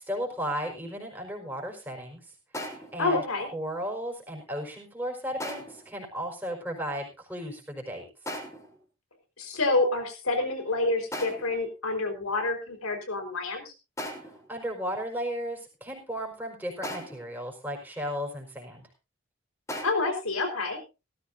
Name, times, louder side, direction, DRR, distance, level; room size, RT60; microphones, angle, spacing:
voice 1, 0.0-2.2 2.5-3.2 3.5-8.1 14.2-18.9, equal, 10° right, 1 dB, 4.8 m, -35 dB
sound 1, 2.5-3.1 5.4-5.9 8.3-8.8 11.1-11.6 14.0-14.5 16.8-17.3 19.7-19.9, equal, 15° left, 3.4 m, -37 dB
voice 2, 3.0-3.5 9.4-13.7 19.8-20.8, left 2 dB, 90° left, 6 dB, 4.3 m, -28 dB
17.5 x 14.5 x 2.6 m, 0.29 s
head